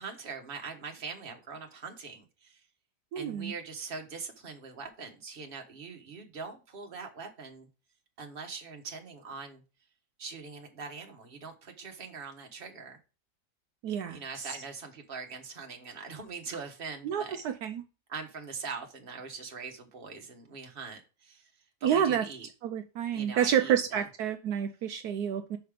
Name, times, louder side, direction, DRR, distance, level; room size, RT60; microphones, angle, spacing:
voice 1, 0.0-2.6 3.1-7.7 8.2-9.6 10.2-13.0 14.1-17.4 18.1-21.5 21.8-22.5 23.1-24.1, right 5 dB, 35° right, 1.4 m, -42 dB
voice 2, 3.1-3.5 13.8-14.5 17.0-17.8 21.8-22.3 22.6-25.6, right 9 dB, 75° right, 1.1 m, -29 dB
5.8 x 5.5 x 5.0 m
omnidirectional pair, 1.8 m